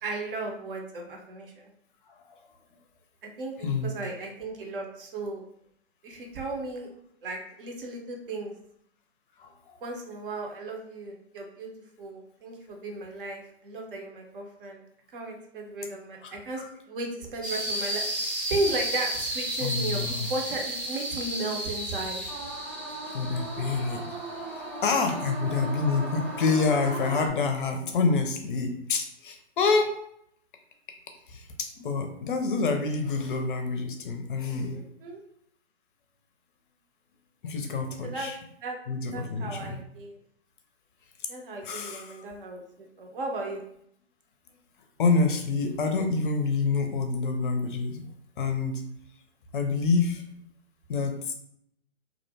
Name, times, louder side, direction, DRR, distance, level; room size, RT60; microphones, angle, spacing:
voice 1, 0.0-1.7 3.4-5.4 6.0-6.9 7.2-8.5 9.8-11.7 12.0-14.8 15.1-22.2 34.7-35.2 38.0-38.3 38.6-38.8 39.1-40.2 41.3-43.6, right 2 dB, 50° right, 1 dB, 0.7 m, -35 dB
voice 2, 16.2-16.7 19.6-20.3 23.1-24.1 24.8-29.9 31.3-34.9 37.4-38.4 38.9-39.8 41.6-42.2 45.0-48.0 48.4-48.8 49.5-50.2 50.9-51.3, left 4 dB, 50° left, 5 dB, 0.5 m, -27 dB
sound 1, 17.4-27.3, right 1 dB, 15° right, 0.6 m, -33 dB
2.5 x 2.1 x 2.7 m, 0.71 s
figure-of-eight pair, 125°, 33 cm